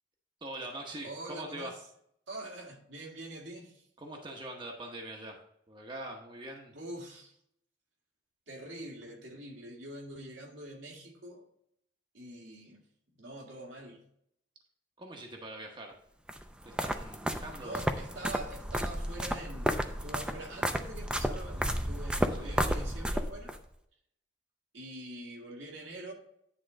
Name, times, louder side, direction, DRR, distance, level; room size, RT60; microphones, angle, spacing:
voice 1, 0.4-1.7 4.0-5.4 5.7-6.7 15.0-15.9 16.6-17.8 22.4-22.6, right 1 dB, 25° right, 1 dB, 0.9 m, -43 dB
voice 2, 1.0-1.8 2.3-3.9 6.7-7.4 8.5-11.5 12.1-12.8 13.1-14.0 17.6-23.5 24.7-26.1, right 1 dB, 80° right, -1 dB, 2.1 m, -44 dB
sound 1, 16.3-23.6, equal, 5° right, 0.4 m, -32 dB
9.8 x 3.8 x 5.1 m, 0.71 s
head